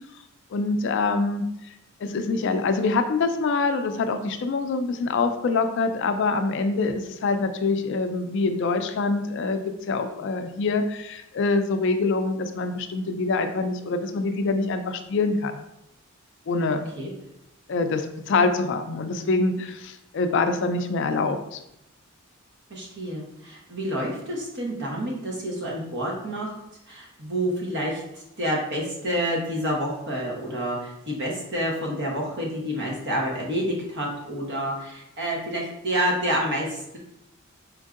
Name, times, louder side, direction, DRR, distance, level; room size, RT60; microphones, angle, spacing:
voice 1, 0.5-1.5 2.0-15.6 16.5-16.9 17.7-21.6, left 3 dB, 60° left, 8 dB, 0.3 m, -25 dB
voice 2, 22.7-26.5 26.9-37.0, equal, 55° right, -2 dB, 0.9 m, -28 dB
4.5 x 2.6 x 2.4 m, 0.82 s
head